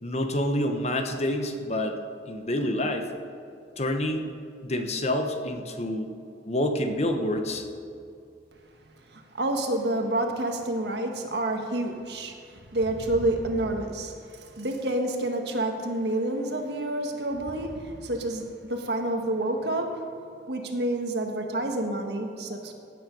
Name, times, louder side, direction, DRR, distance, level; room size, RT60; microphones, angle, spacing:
voice 1, 0.0-2.0 2.3-3.1 3.8-4.3 4.6-6.1 6.5-7.6, left 1 dB, 35° left, 5 dB, 1.1 m, -27 dB
voice 2, 9.1-20.0 20.5-22.7, right 1 dB, 65° right, 3 dB, 1.6 m, -29 dB
16.5 x 9.2 x 5.4 m, 2.5 s
head